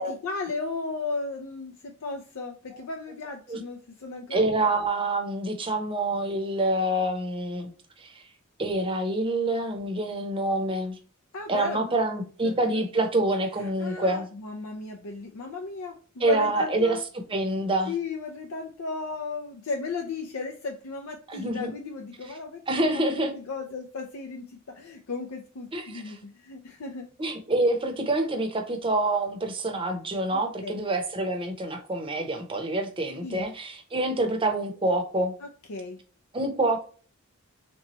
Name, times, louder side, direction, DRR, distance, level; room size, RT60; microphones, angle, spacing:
voice 1, 0.0-4.4 11.3-12.0 12.4-12.8 13.6-17.0 17.9-27.1 30.3-30.7 33.2-33.5 35.4-36.0, left 3 dB, 75° left, 2 dB, 0.6 m, -35 dB
voice 2, 4.3-7.7 8.0-8.2 8.6-11.0 11.5-14.3 16.2-17.0 17.3-17.9 21.3-21.7 22.7-23.4 25.7-26.2 27.2-35.3 36.3-36.8, right 2 dB, 25° right, 5 dB, 0.7 m, -27 dB
3.3 x 3.1 x 2.9 m, 0.39 s
head